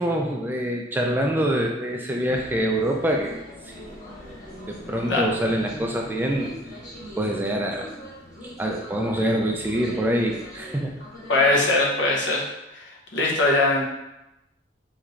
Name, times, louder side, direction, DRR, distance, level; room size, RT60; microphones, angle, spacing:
voice 1, 0.0-3.4 3.6-3.9 4.7-6.5 7.2-7.9 8.4-10.9, right 1 dB, 10° right, 0 dB, 0.3 m, -25 dB
sound 1, 2.2-11.8, equal, 45° left, 1.2 m, -41 dB
voice 2, 11.3-12.5 12.7-13.8, left 2 dB, 70° left, -2 dB, 0.9 m, -21 dB
4.5 x 3.1 x 2.5 m, 0.91 s
head